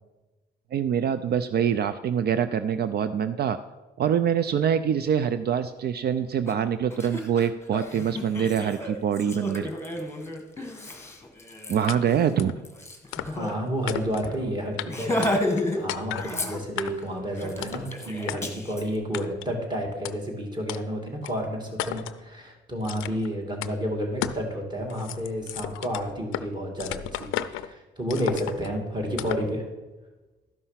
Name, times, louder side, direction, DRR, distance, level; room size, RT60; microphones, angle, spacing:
voice 1, 0.7-3.6 4.0-9.7 11.7-12.6, right 8 dB, 55° right, 12 dB, 0.4 m, -25 dB
Laughter, 6.5-6.6 6.9-13.5 13.9-14.0 14.3-14.5 14.9-15.8 16.1-16.9 17.4-18.8, left 1 dB, 15° left, 1.4 m, -32 dB
sound 1, 11.9-12.0 12.4-12.6 13.1-13.5 13.9-14.3 14.8-14.9 15.2-15.6 15.9-16.3 16.8-17.1 17.6-17.9 18.3-18.4 19.1-19.5 20.0-20.1 20.7-20.8 21.2-21.3 21.8-22.2 22.8-23.3 23.6-23.7 24.2-24.5 24.8-26.5 26.8-27.7 28.1-28.7 29.2-29.5, left 12 dB, 85° left, 0.5 m, -33 dB
voice 2, 13.3-15.2 15.7-29.6, equal, 20° right, 1 dB, 2.4 m, -31 dB
12.0 x 5.5 x 5.7 m, 1.2 s
cardioid pair, 90°, 20 cm